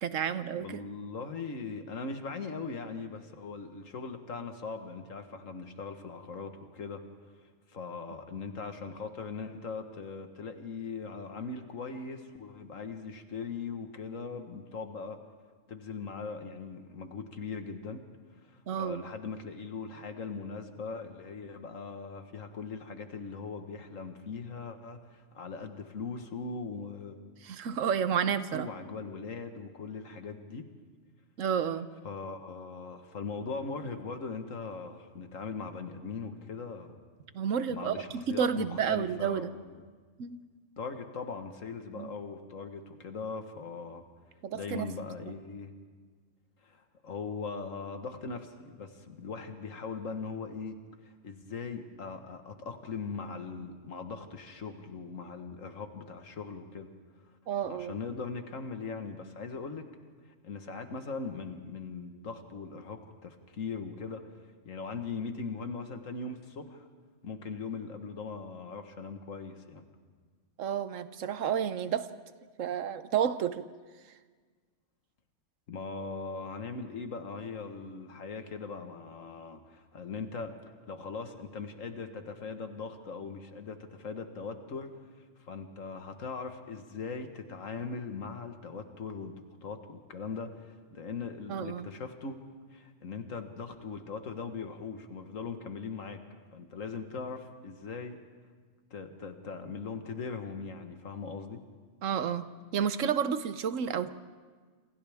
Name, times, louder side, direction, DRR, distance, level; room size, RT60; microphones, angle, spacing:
voice 1, 0.0-0.8 18.7-19.0 27.4-28.7 31.4-31.9 37.3-39.5 40.2-40.4 41.9-42.1 44.4-44.9 57.5-57.9 70.6-72.1 72.6-73.7 91.5-91.9 102.0-102.4 102.7-104.1, right 8 dB, 80° right, 12 dB, 1.2 m, -30 dB
voice 2, 0.6-7.0 7.7-15.2 15.7-18.0 18.4-27.2 28.5-30.7 32.0-37.0 37.7-39.8 40.8-44.0 44.5-45.7 46.6-50.8 51.0-56.9 57.6-59.9 60.3-66.9 67.2-69.8 75.7-80.5 80.9-84.9 85.2-89.3 89.6-92.4 92.7-96.2 96.5-98.2 98.9-101.6, left 4 dB, 90° left, 6 dB, 1.8 m, -40 dB
28.0 x 26.5 x 3.6 m, 1.5 s
omnidirectional pair, 1.3 m